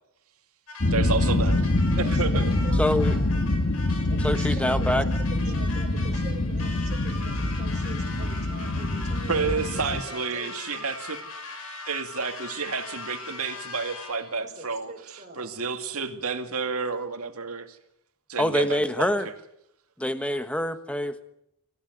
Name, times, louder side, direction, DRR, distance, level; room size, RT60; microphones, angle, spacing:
sound 1, 0.7-14.3, left 3 dB, 80° left, 4.9 m, -40 dB
sound 2, 0.8-10.0, left 2 dB, 55° left, 1.5 m, -25 dB
voice 1, 0.9-1.6 2.1-2.5 3.9-4.0 9.3-11.2 11.9-17.8 18.3-19.3, right 4 dB, 80° right, 7 dB, 2.4 m, -30 dB
voice 2, 1.9-3.3 4.1-10.5 14.4-15.6, right 2 dB, 35° right, 3 dB, 5.3 m, -44 dB
voice 3, 2.8-3.1 4.2-5.0 18.4-19.3 20.0-21.2, left 1 dB, 5° left, 10 dB, 1.3 m, -25 dB
26.5 x 15.5 x 9.7 m, 0.80 s
head